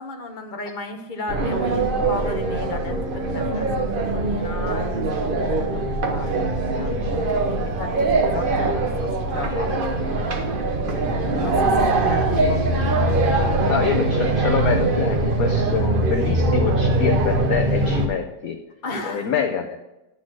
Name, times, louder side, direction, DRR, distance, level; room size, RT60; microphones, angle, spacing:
voice 1, 0.0-10.2 10.6-10.8 11.0-13.4 18.8-19.3, left 3 dB, 35° left, 4 dB, 0.9 m, -35 dB
sound 1, 1.3-18.1, right 2 dB, 40° right, 0.8 m, -22 dB
voice 2, 13.7-18.6 19.0-19.8, left 7 dB, 65° left, 5 dB, 1.0 m, -26 dB
12.0 x 4.2 x 6.2 m, 0.97 s
omnidirectional pair, 2.0 m